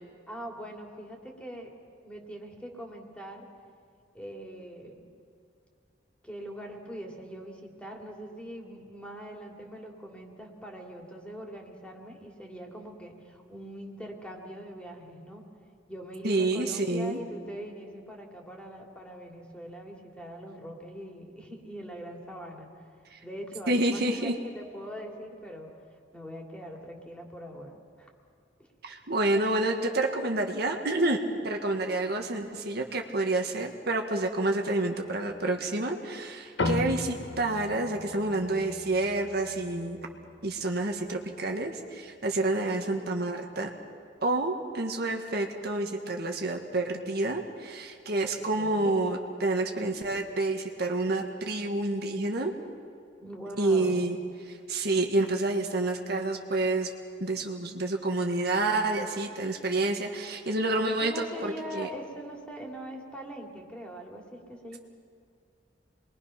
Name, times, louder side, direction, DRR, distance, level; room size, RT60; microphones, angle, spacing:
voice 1, 0.3-1.7 2.0-3.5 4.1-5.1 6.2-15.5 15.9-22.7 23.2-25.7 26.1-28.1 28.6-28.7 48.3-49.0 53.2-54.0 60.8-64.8, equal, 5° left, 0 dB, 2.9 m, -42 dB
voice 2, 16.2-17.2 23.1-23.2 23.7-24.4 28.8-31.2 31.4-40.0 40.4-43.7 44.2-52.5 53.6-54.2 54.5-56.9 57.2-61.9, right 2 dB, 60° right, 3 dB, 1.7 m, -28 dB
sound 1, 36.6-41.3, left 2 dB, 85° left, 1.4 m, -36 dB
27.5 x 22.0 x 5.9 m, 2.3 s
head